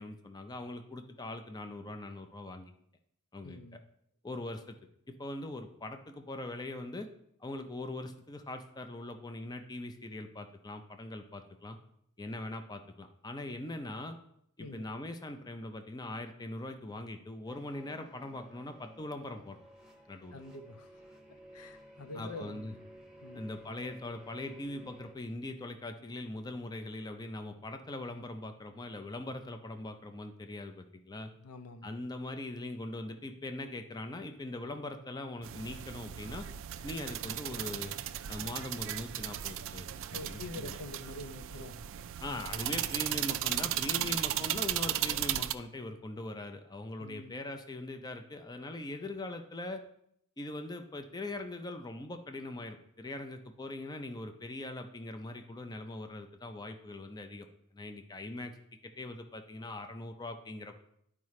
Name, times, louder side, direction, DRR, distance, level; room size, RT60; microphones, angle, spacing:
voice 1, 0.0-2.7 3.3-3.6 4.2-4.8 5.1-7.1 7.4-11.8 12.2-14.2 14.6-19.6 20.1-20.4 22.1-22.7 23.3-31.3 31.8-36.5 36.8-38.0 38.3-39.9 40.1-40.8 42.2-49.8 50.4-57.5 57.7-58.5 59.0-60.8, left 2 dB, 20° left, 7 dB, 0.5 m, -41 dB
voice 2, 3.4-3.8 14.6-14.9 20.3-22.6 23.2-23.4 31.4-31.9 40.1-41.8 47.0-47.4, left 2 dB, 80° left, 9 dB, 0.6 m, -46 dB
sound 1, 17.5-25.1, right 1 dB, 5° right, 1.0 m, -54 dB
sound 2, 35.4-45.5, right 12 dB, 60° right, 0.3 m, -36 dB
11.0 x 4.8 x 3.1 m, 0.73 s
head